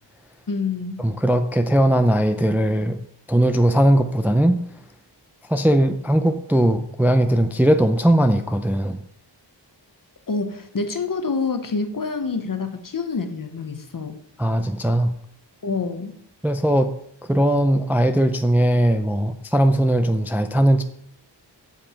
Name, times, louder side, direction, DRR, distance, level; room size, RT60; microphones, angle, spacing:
voice 1, 0.5-1.0 10.3-14.2 15.6-16.2, left 4 dB, 45° left, 8 dB, 1.0 m, -27 dB
voice 2, 1.0-3.0 3.3-4.6 5.5-9.0 14.4-15.1 16.4-16.9 17.3-20.8, right 1 dB, 5° right, 8 dB, 0.4 m, -19 dB
7.5 x 7.2 x 4.4 m, 0.67 s
wide cardioid pair, 95°, 44 cm